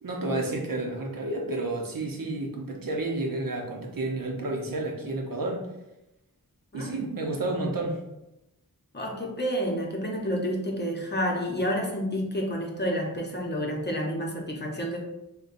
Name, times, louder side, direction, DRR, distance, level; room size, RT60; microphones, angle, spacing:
voice 1, 0.0-5.7 6.7-8.0, right 2 dB, 70° right, 0 dB, 0.7 m, -31 dB
voice 2, 8.9-15.0, equal, 30° left, -1 dB, 0.7 m, -29 dB
5.2 x 2.2 x 2.5 m, 0.92 s
wide cardioid pair, 80°, 35 cm